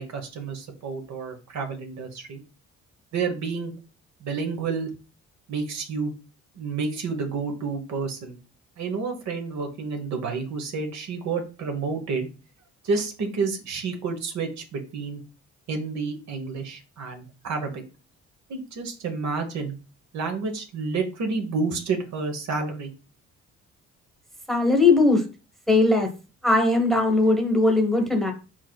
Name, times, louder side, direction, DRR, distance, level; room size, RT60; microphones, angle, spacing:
voice 1, 0.0-2.4 3.1-3.7 4.2-4.9 5.5-6.1 6.5-8.4 8.8-12.3 12.8-15.2 15.7-17.8 18.5-19.8 20.1-22.9, right 4 dB, 65° right, 3 dB, 1.1 m, -30 dB
voice 2, 24.5-25.2 25.7-26.1 26.4-28.3, left 2 dB, ahead, 3 dB, 1.0 m, -19 dB
4.5 x 4.4 x 2.3 m, 0.33 s
cardioid pair, 90°, 30 cm